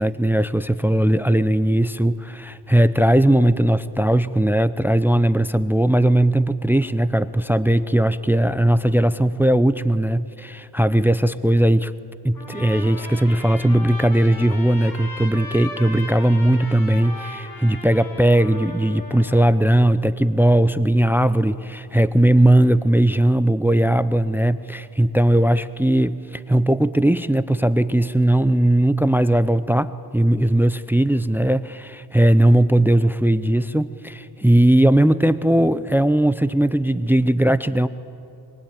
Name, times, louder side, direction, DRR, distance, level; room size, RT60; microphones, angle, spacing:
voice 1, 0.0-11.9 12.2-37.9, right 1 dB, 5° right, 15 dB, 0.6 m, -18 dB
Trumpet, 12.3-19.5, left 2 dB, 55° left, 7.1 m, -37 dB
23.5 x 23.5 x 9.0 m, 2.6 s
cardioid pair, 85°, 43 cm